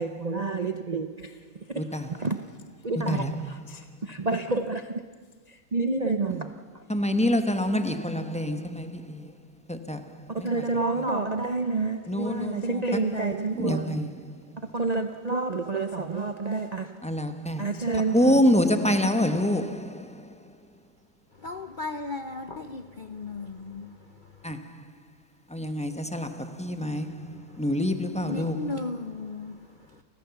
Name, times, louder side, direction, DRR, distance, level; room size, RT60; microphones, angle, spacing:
voice 1, 0.0-1.8 2.1-2.5 2.8-5.1 5.5-6.8 10.3-14.0 14.7-17.1 17.6-18.4, right 3 dB, 75° right, 0.3 m, -29 dB
voice 2, 1.7-2.1 3.1-3.6 6.9-9.3 9.7-10.6 12.1-12.8 13.2-13.3 13.5-14.6 17.0-20.6 24.4-24.9 25.5-28.8, left 1 dB, 5° left, 0.7 m, -27 dB
voice 3, 21.3-24.6 26.8-27.6 28.2-30.0, left 3 dB, 90° left, 0.4 m, -37 dB
30.0 x 14.5 x 7.1 m
omnidirectional pair, 2.1 m